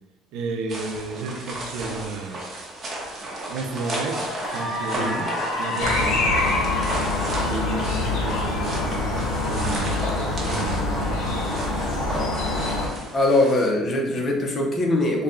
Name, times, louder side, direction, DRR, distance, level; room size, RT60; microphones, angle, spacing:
voice 1, 0.3-2.4 3.5-4.3 4.5-5.3 5.6-6.8 7.5-11.4, right 4 dB, 80° right, 5 dB, 0.5 m, -32 dB
sound 1, 0.7-13.7, right 1 dB, 25° right, 0.9 m, -34 dB
Cheering / Applause, 2.9-3.2 3.7-10.2, left 2 dB, 55° left, 1.2 m, -31 dB
voice 2, 4.9-5.3 13.1-15.2, left 2 dB, 30° left, 0 dB, 0.7 m, -22 dB
sound 2, 5.8-12.9, left 2 dB, 75° left, 0.8 m, -25 dB
4.0 x 2.3 x 3.7 m, 1.1 s
cardioid pair, 145°, 0 cm